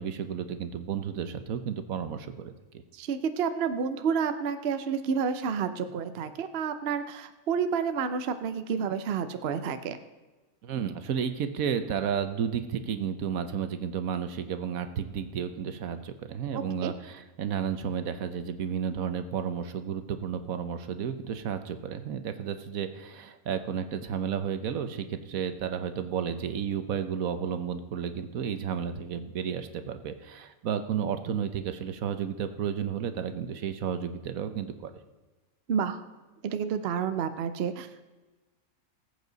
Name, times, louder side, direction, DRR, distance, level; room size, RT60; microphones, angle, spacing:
voice 1, 0.0-2.5 10.6-34.9, right 8 dB, 75° right, 9 dB, 1.3 m, -32 dB
voice 2, 2.9-10.0 16.5-16.9 35.7-36.0 36.4-38.0, right 6 dB, 55° right, 9 dB, 0.8 m, -30 dB
19.5 x 8.2 x 4.0 m, 1.2 s
omnidirectional pair, 1.5 m